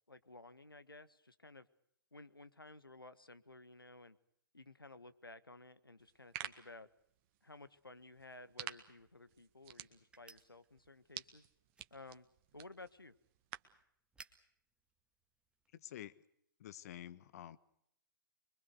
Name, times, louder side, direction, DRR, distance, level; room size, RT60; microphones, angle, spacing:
voice 1, 0.1-1.7 2.1-4.2 4.5-6.9 7.4-11.5 11.9-12.3 12.5-13.1, left 2 dB, 85° left, 12 dB, 1.6 m, -55 dB
sound 1, 6.0-13.8, right 12 dB, 35° right, 1.7 m, -52 dB
sound 2, 10.1-15.9, right 4 dB, 10° right, 1.8 m, -65 dB
voice 2, 15.7-16.2 16.6-17.6, left 11 dB, 45° left, 14 dB, 1.4 m, -49 dB
25.5 x 23.5 x 6.7 m, 0.72 s
figure-of-eight pair, 120°, 12 cm